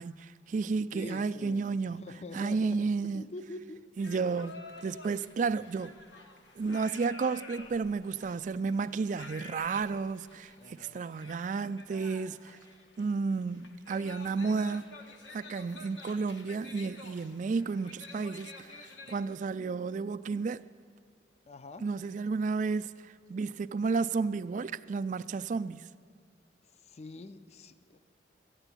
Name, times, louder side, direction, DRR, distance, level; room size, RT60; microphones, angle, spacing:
voice 1, 0.0-2.1 2.3-3.2 4.0-5.9 6.6-12.6 13.0-14.9 15.3-20.6 21.8-25.9, right 4 dB, 45° right, 0.3 m, -32 dB
voice 2, 0.9-3.8 10.6-11.1 21.5-21.9 26.6-28.0, left 2 dB, 35° left, 0.4 m, -45 dB
sound 1, 4.0-19.1, left 3 dB, 85° left, 1.3 m, -50 dB
13.5 x 9.0 x 8.4 m
head